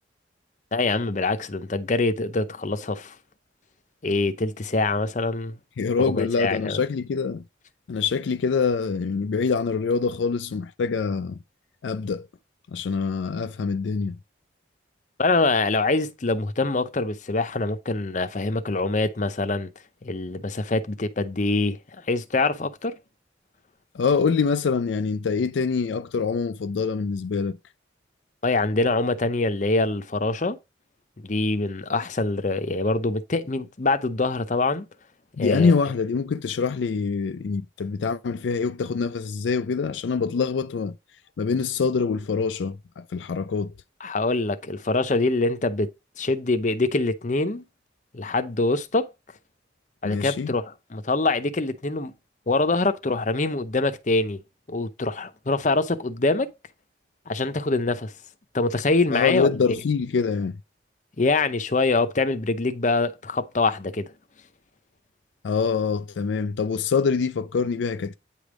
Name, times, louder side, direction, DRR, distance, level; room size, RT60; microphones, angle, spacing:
voice 1, 0.7-3.1 4.0-5.5 6.0-6.8 15.2-19.7 20.0-23.0 28.4-30.6 31.2-34.8 35.4-35.8 44.0-45.9 46.2-47.6 48.1-49.1 50.0-52.1 52.5-54.4 54.7-56.5 57.3-58.1 58.5-59.5 61.2-64.1, left 3 dB, 40° left, 0.7 m, -24 dB
voice 2, 5.8-7.4 7.9-11.4 11.8-12.3 12.7-14.2 23.9-27.6 35.4-40.9 41.4-43.7 50.0-50.5 59.1-60.6 65.4-68.2, left 5 dB, 75° left, 0.4 m, -25 dB
9.0 x 3.4 x 4.9 m
head